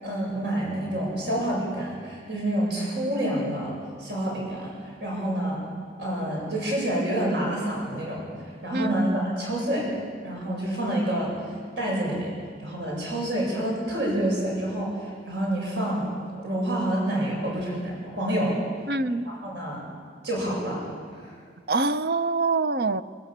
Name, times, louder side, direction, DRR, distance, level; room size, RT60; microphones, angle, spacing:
voice 1, 0.0-5.6 6.0-8.3 8.6-9.9 10.2-11.3 11.8-12.3 12.6-16.1 16.4-18.6 19.2-19.8 20.2-20.9 21.1-21.3, right 1 dB, 80° right, -3 dB, 7.9 m, -28 dB
voice 2, 8.7-9.2 18.9-19.3 21.7-23.0, right 3 dB, 60° right, 12 dB, 0.7 m, -25 dB
23.0 x 22.5 x 7.4 m, 2.1 s
head